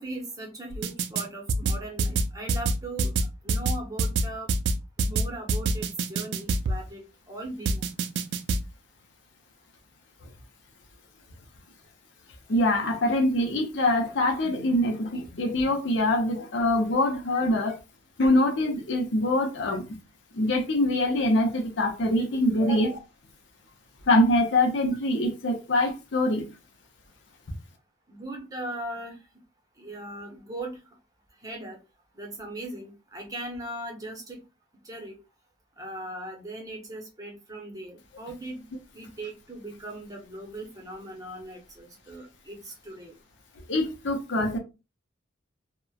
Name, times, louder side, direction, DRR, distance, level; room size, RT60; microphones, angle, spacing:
voice 1, 0.0-3.1 3.4-4.5 5.0-7.9 17.6-17.7 22.6-23.0 28.1-29.2 29.8-30.8 31.4-31.8 32.1-34.4 34.8-35.2 35.8-38.7 38.9-43.1, right 1 dB, 20° right, 0.7 m, -39 dB
sound 1, 0.7-1.2 1.5-6.8 7.7-8.6, right 3 dB, 65° right, 0.3 m, -25 dB
voice 2, 12.5-17.8 18.2-19.8 20.3-22.9 24.1-26.5 43.7-44.6, left 1 dB, 65° left, 0.6 m, -24 dB
2.9 x 2.1 x 2.3 m
head